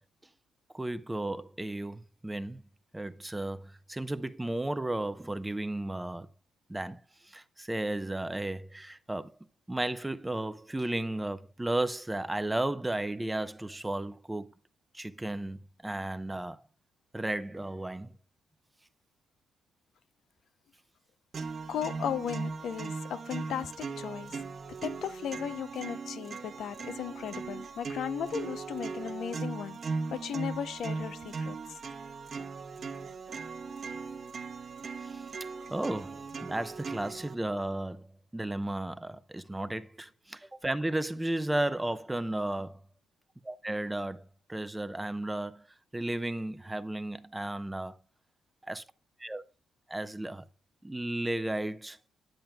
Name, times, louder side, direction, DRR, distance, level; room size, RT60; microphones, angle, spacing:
voice 1, 0.7-2.6 2.9-6.3 6.7-9.3 9.7-14.5 14.9-16.6 17.1-18.1 35.0-35.3 35.7-38.1 38.3-42.8 43.4-45.7 45.9-47.9 48.6-48.8 49.2-49.4 49.9-50.4 50.8-52.0, right 1 dB, 10° right, 0.6 m, -34 dB
sound 1, 21.3-37.3, right 4 dB, 45° right, 1.0 m, -39 dB
voice 2, 21.7-24.3 24.8-31.6, left 9 dB, 70° left, 0.6 m, -36 dB
10.5 x 7.6 x 2.2 m
cardioid pair, 90°, 0 cm